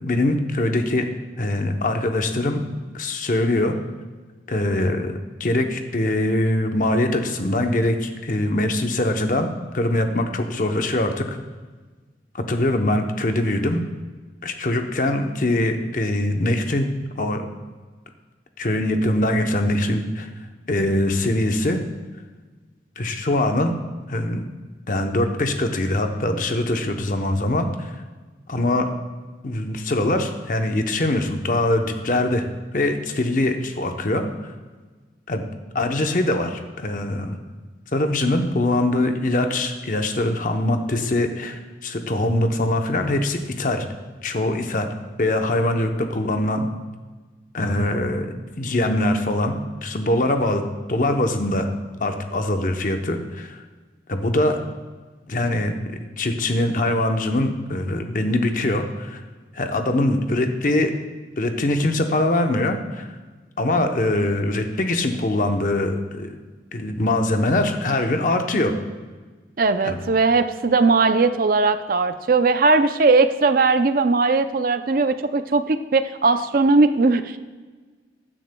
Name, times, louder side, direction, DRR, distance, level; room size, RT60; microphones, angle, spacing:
voice 1, 0.0-1.0 1.4-2.6 2.9-3.7 4.5-11.4 12.3-13.8 14.4-17.5 18.6-20.3 20.7-21.8 23.0-23.7 24.1-24.4 24.9-27.9 28.5-28.9 29.4-32.5 32.7-34.3 35.3-35.4 35.7-37.4 37.9-43.9 44.2-44.9 45.2-46.7 47.5-48.3 48.6-50.6 50.9-51.7 52.0-53.6 54.1-54.6 55.3-55.8 56.2-59.2 59.5-60.9 61.4-63.1 63.6-66.3 66.7-68.8 69.8-70.0, left 1 dB, 45° left, 5 dB, 0.8 m, -22 dB
voice 2, 69.6-77.4, right 3 dB, 50° right, 10 dB, 0.5 m, -19 dB
15.5 x 10.0 x 2.2 m, 1.3 s
head